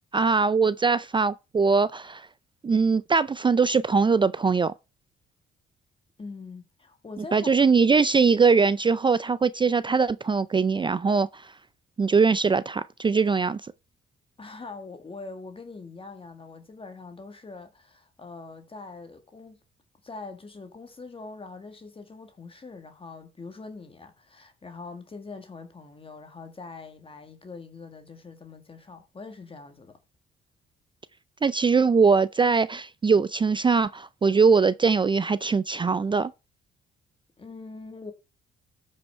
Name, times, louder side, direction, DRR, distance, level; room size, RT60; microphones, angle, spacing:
voice 1, 0.1-2.3 2.6-4.7 7.3-11.5 12.0-13.6 31.4-36.3, right 5 dB, 25° right, 0.4 m, -21 dB
voice 2, 6.2-7.5 14.4-19.6 20.0-30.0 37.4-38.1, left 3 dB, 25° left, 1.6 m, -43 dB
12.5 x 5.6 x 4.4 m
cardioid pair, 90°, 20 cm